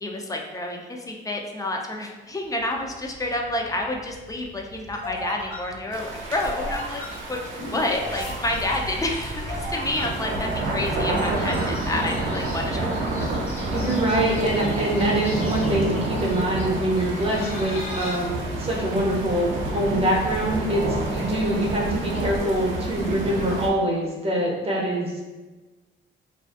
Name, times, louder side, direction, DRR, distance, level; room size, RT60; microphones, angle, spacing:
voice 1, 0.0-7.0 7.3-7.4 7.7-12.8 13.2-13.4 14.2-14.4, left 1 dB, 15° left, 1 dB, 0.3 m, -29 dB
sound 1, 2.6-15.3, equal, 75° left, 1.2 m, -37 dB
sound 2, 5.9-23.7, right 2 dB, 70° right, 0.6 m, -29 dB
sound 3, 11.3-18.2, left 1 dB, 35° left, 0.7 m, -41 dB
voice 2, 13.7-25.2, right 1 dB, 30° right, -2 dB, 0.6 m, -24 dB
2.5 x 2.3 x 2.3 m, 1.2 s
cardioid pair, 90°, 20 cm